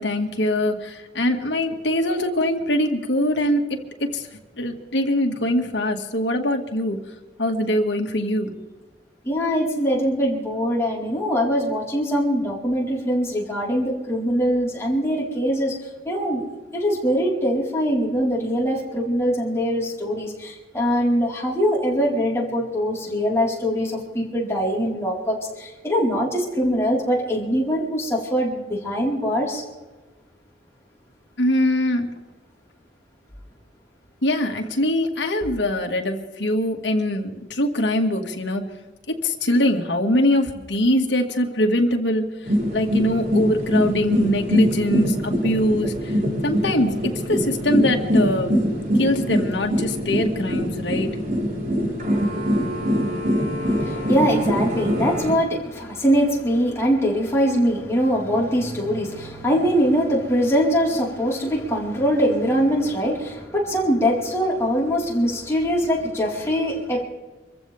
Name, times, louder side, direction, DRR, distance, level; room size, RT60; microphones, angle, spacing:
voice 1, 0.0-3.6 4.1-4.2 4.6-7.0 7.4-8.5 31.4-32.1 34.2-38.6 39.2-42.2 42.7-45.9 46.4-47.0 47.2-48.5 49.0-51.2, left 1 dB, 75° left, 2 dB, 2.1 m, -22 dB
voice 2, 9.2-15.8 16.0-16.4 16.7-29.6 53.6-67.0, equal, 15° left, -4 dB, 4.5 m, -22 dB
sound 1, 42.4-55.3, equal, 50° right, 4.2 m, -23 dB
26.0 x 15.0 x 3.6 m, 1.2 s
head